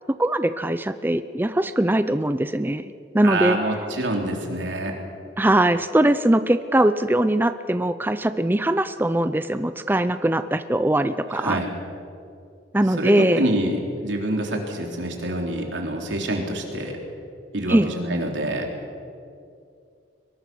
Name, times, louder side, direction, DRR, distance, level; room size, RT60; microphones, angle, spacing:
voice 1, 0.2-2.8 3.1-3.6 5.4-11.6 12.7-13.4 17.7-17.9, right 1 dB, 10° right, 11 dB, 0.5 m, -21 dB
voice 2, 3.2-4.9 11.3-11.7 13.0-17.0 17.5-18.7, right 1 dB, 90° right, 2 dB, 3.5 m, -26 dB
23.0 x 21.0 x 6.2 m, 2.5 s
head